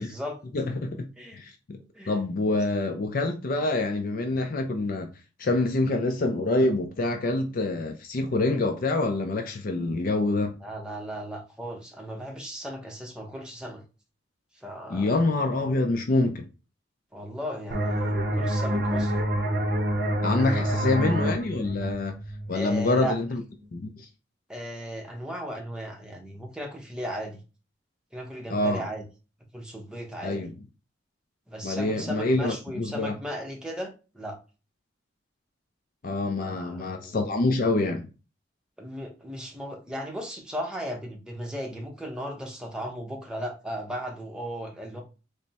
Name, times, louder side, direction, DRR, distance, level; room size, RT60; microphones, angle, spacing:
voice 1, 0.0-0.4 1.2-1.4 1.9-2.1 10.6-13.8 14.6-15.1 17.1-19.3 20.6-21.1 22.5-23.2 24.5-27.4 28.1-29.1 29.5-30.5 31.5-34.4 36.4-37.2 38.8-45.0, equal, 5° right, 0.7 m, -36 dB
voice 2, 0.5-1.0 1.3-1.8 2.1-5.1 5.4-10.6 14.9-16.5 20.2-22.1 22.5-23.4 23.7-24.1 28.5-28.8 30.2-30.5 31.6-33.2 36.0-38.1, left 2 dB, 50° left, 0.4 m, -26 dB
sound 1, 17.7-23.1, right 1 dB, 55° right, 0.6 m, -27 dB
3.3 x 2.0 x 4.0 m
head